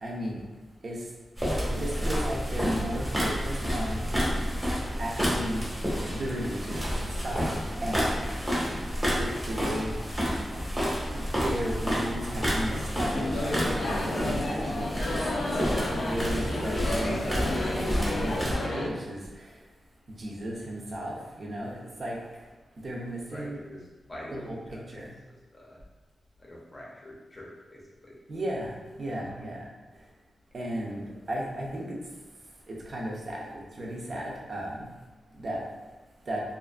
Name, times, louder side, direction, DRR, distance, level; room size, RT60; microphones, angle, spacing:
voice 1, 0.0-0.4 0.8-1.0 1.7-4.0 5.0-5.7 6.1-7.5 7.8-8.2 8.9-10.2 11.1-15.2 15.9-19.2 20.2-22.2 22.8-23.6 24.3-24.6 24.9-25.1 28.3-29.7 30.5-32.0 32.7-34.9 35.4-35.6 36.3-36.4, right 1 dB, 45° right, -3 dB, 0.5 m, -35 dB
sound 1, 1.4-18.6, equal, 10° right, 0.8 m, -30 dB
voice 2, 1.9-2.2 23.3-23.8 24.1-24.9 25.5-25.8 26.4-28.1, left 1 dB, 25° left, -4 dB, 0.6 m, -45 dB
sound 2, 13.1-18.9, left 2 dB, 70° left, 0.4 m, -31 dB
2.5 x 2.4 x 2.3 m, 1.2 s
wide cardioid pair, 130°, 0 cm